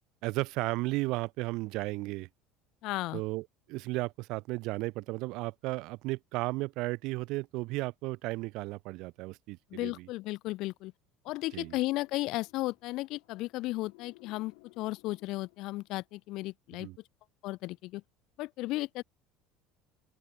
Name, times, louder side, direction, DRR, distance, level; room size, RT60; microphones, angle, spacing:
voice 1, 0.2-2.3 3.1-10.1 11.5-11.8 16.8-17.0, right 22 dB, 55° right, 1.6 m, -34 dB
voice 2, 2.8-3.2 9.7-10.9 11.3-16.9 17.4-18.0 18.4-19.0, left 19 dB, 50° left, 0.3 m, -35 dB
sound 1, 11.4-16.0, left 33 dB, 75° left, 5.0 m, -60 dB
open air
cardioid pair, 170°, 0 cm